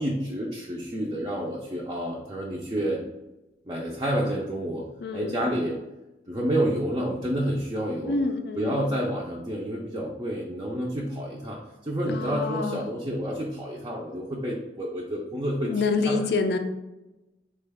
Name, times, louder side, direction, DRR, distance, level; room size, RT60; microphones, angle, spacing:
voice 1, 0.0-3.0 3.7-4.9 5.1-5.8 6.3-8.2 8.6-16.2, equal, 20° right, -3 dB, 0.4 m, -29 dB
voice 2, 5.0-5.4 8.1-8.8 12.1-12.8 15.6-16.6, left 3 dB, 60° left, 6 dB, 0.4 m, -27 dB
3.8 x 2.2 x 3.4 m, 1.0 s
head